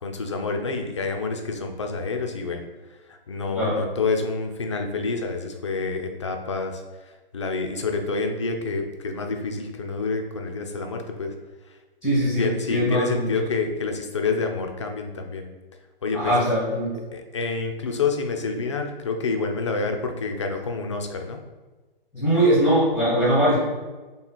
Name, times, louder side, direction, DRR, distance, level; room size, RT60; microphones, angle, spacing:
voice 1, 0.0-2.6 3.1-11.3 12.4-15.5 16.0-16.4 17.1-21.4, left 4 dB, 30° left, 4 dB, 0.4 m, -28 dB
voice 2, 12.0-13.3 16.1-17.0 22.1-23.5, right 1 dB, ahead, -9 dB, 0.8 m, -21 dB
3.3 x 3.0 x 4.2 m, 1.2 s
figure-of-eight pair, 130°, 29 cm